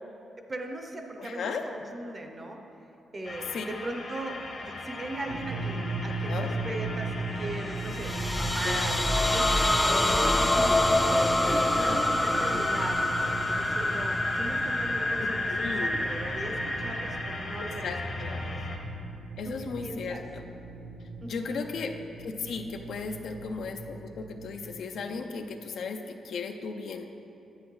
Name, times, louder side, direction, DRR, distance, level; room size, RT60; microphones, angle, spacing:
voice 1, 0.5-2.6 3.1-10.8 11.5-17.9 18.3-18.6 19.4-20.2 21.2-21.7, right 1 dB, 30° right, 4 dB, 0.7 m, -39 dB
voice 2, 1.2-1.6 3.5-3.6 6.3-6.5 8.6-9.4 11.5-12.0 15.5-16.0 17.6-18.4 19.4-20.4 21.3-21.9 22.2-27.0, left 5 dB, 70° left, 5 dB, 0.5 m, -36 dB
sound 1, 3.2-18.8, left 2 dB, 50° left, 0.9 m, -38 dB
sound 2, 5.3-24.7, right 3 dB, 65° right, 0.6 m, -38 dB
sound 3, 7.8-18.4, left 1 dB, 10° left, 0.4 m, -27 dB
9.3 x 8.3 x 3.2 m, 2.8 s
cardioid pair, 125°, 0 cm